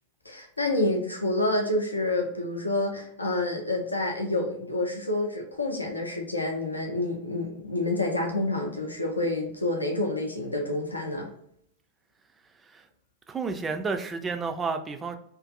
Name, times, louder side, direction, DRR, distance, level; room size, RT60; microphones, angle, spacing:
voice 1, 0.3-11.3, left 2 dB, 80° left, 0.5 m, -28 dB
voice 2, 13.3-15.2, right 4 dB, 20° right, 0.3 m, -31 dB
2.5 x 2.4 x 2.4 m
figure-of-eight pair, 90°, 0 cm